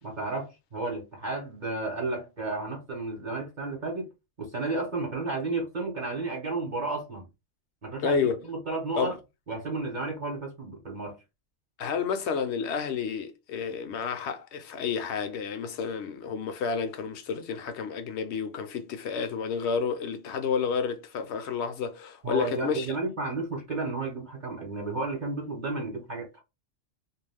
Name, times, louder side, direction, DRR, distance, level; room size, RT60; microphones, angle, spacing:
voice 1, 0.0-4.1 4.4-7.3 7.8-9.2 9.5-11.2 22.2-26.4, right 3 dB, 40° right, 0.9 m, -32 dB
voice 2, 8.0-8.4 9.0-9.1 11.8-22.9, left 6 dB, 65° left, 0.8 m, -30 dB
2.4 x 2.3 x 3.3 m
omnidirectional pair, 1.3 m